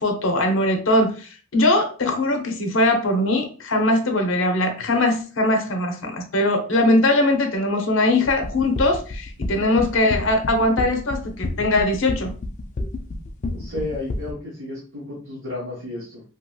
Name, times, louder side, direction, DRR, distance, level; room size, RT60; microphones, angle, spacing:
voice 1, 0.0-12.3, left 1 dB, 70° left, 5 dB, 0.7 m, -21 dB
sound 1, 8.3-14.3, left 2 dB, 35° left, 0.3 m, -29 dB
voice 2, 13.5-16.2, left 2 dB, 65° right, -6 dB, 1.1 m, -32 dB
2.9 x 2.8 x 2.3 m, 0.38 s
head